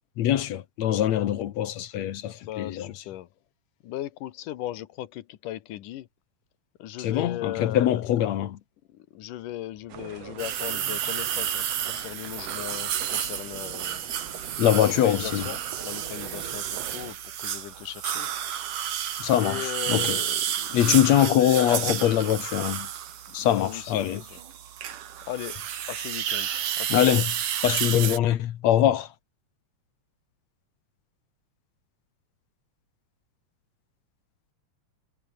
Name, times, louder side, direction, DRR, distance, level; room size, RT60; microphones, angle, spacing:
voice 1, 0.2-2.9 7.0-8.6 14.6-15.5 19.2-20.2 20.7-22.9 23.3-24.2 26.9-27.3 27.6-29.1, left 11 dB, 65° left, 2.2 m, -23 dB
voice 2, 2.4-3.3 3.8-6.1 6.8-8.0 8.9-14.1 14.4-18.3 19.4-22.3 23.4-24.4 25.3-26.5 26.8-27.0, left 13 dB, 85° left, 2.7 m, -37 dB
sound 1, 9.7-17.2, left 1 dB, 10° left, 8.0 m, -59 dB
sound 2, 9.9-17.2, right 9 dB, 55° right, 2.5 m, -43 dB
sound 3, 10.4-28.2, right 10 dB, 80° right, 3.6 m, -31 dB
omnidirectional pair, 3.6 m